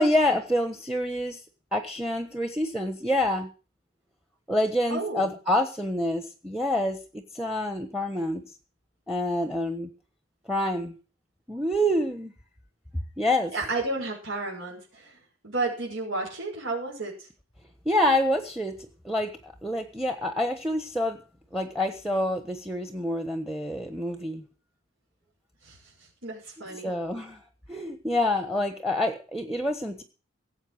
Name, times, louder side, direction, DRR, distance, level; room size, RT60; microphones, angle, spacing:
voice 1, 0.0-1.4 1.7-3.5 4.5-8.4 9.1-9.9 10.5-11.0 11.5-12.3 13.2-13.5 17.8-18.7 19.0-21.2 21.5-24.4 26.8-27.4 27.7-30.0, left 1 dB, ahead, 8 dB, 1.2 m, -27 dB
voice 2, 4.9-5.3 13.5-15.2 15.4-17.3 25.6-25.8 26.2-26.9, right 3 dB, 75° right, -2 dB, 5.9 m, -32 dB
17.5 x 7.9 x 6.5 m, 0.35 s
head